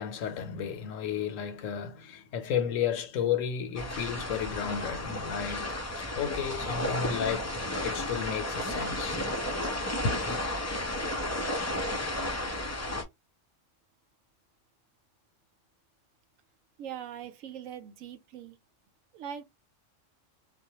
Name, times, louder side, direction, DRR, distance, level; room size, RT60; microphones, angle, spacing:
voice 1, 0.0-5.7 6.2-7.5 7.8-9.2 10.0-10.3, left 7 dB, 85° left, 1.0 m, -32 dB
sound 1, 3.7-13.0, left 1 dB, 20° left, 0.4 m, -33 dB
voice 2, 16.8-18.6 19.1-19.4, right 9 dB, 90° right, 1.0 m, -41 dB
2.4 x 2.2 x 2.8 m
omnidirectional pair, 1.3 m